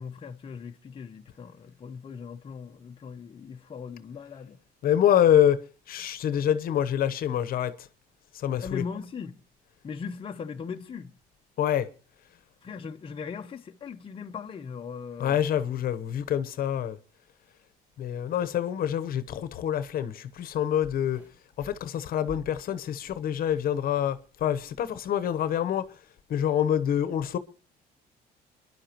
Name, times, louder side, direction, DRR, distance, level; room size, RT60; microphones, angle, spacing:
voice 1, 0.0-4.6 8.6-9.4 9.8-11.1 12.6-15.4, left 6 dB, 30° left, 0.8 m, -39 dB
voice 2, 4.8-5.6 5.9-7.7 8.3-8.8 11.6-11.9 15.2-17.0 18.0-21.2 21.6-25.9 26.3-27.4, left 10 dB, 60° left, 1.0 m, -26 dB
sound 1, 20.8-23.7 24.0-24.5 25.2-25.3, right 1 dB, 10° right, 4.4 m, -50 dB
27.0 x 11.0 x 3.0 m
cardioid pair, 110°, 17 cm